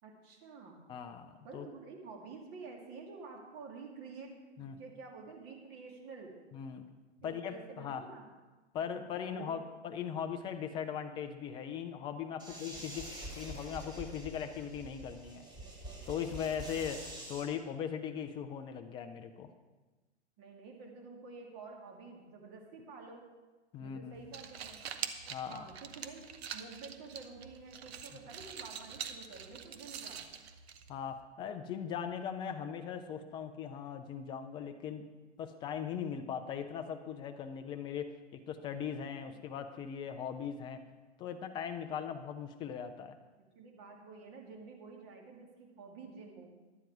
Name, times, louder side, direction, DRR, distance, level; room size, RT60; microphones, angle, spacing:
voice 1, 0.0-0.8 1.4-6.3 7.2-8.3 8.8-9.7 12.4-12.8 16.7-16.8 20.4-23.2 23.8-24.8 25.5-26.2 26.5-30.3 39.3-39.4 43.4-46.5, right 4 dB, 35° right, 1 dB, 2.6 m, -50 dB
voice 2, 0.9-1.7 4.6-4.8 6.5-6.9 7.2-8.0 8.7-13.1 13.4-15.5 16.1-17.0 17.3-19.5 23.7-24.2 25.3-25.7 30.9-35.1 35.4-40.8 41.2-43.2, left 8 dB, 15° left, 9 dB, 0.4 m, -39 dB
sound 1, 12.4-17.4, right 1 dB, 10° right, 3.2 m, -46 dB
sound 2, 24.1-31.2, right 7 dB, 60° right, 1.1 m, -45 dB
12.0 x 9.0 x 4.8 m, 1.2 s
hypercardioid pair, 130°, 35 cm